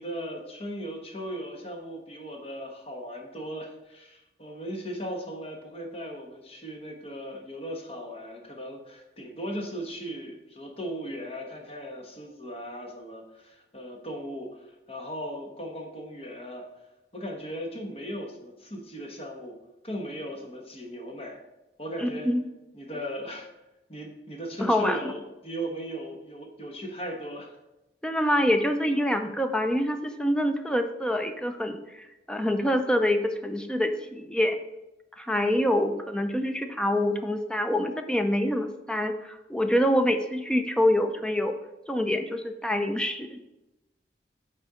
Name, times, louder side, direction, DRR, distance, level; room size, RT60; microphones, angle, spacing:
voice 1, 0.0-16.6 17.1-19.6 19.8-21.4 21.8-22.3 22.7-23.5 23.9-27.5, equal, 35° left, 1 dB, 1.1 m, -37 dB
voice 2, 22.0-22.4 24.6-25.1 28.0-34.6 35.2-41.6 41.9-43.4, left 1 dB, 5° left, 6 dB, 0.4 m, -26 dB
6.5 x 4.2 x 4.9 m, 0.98 s
head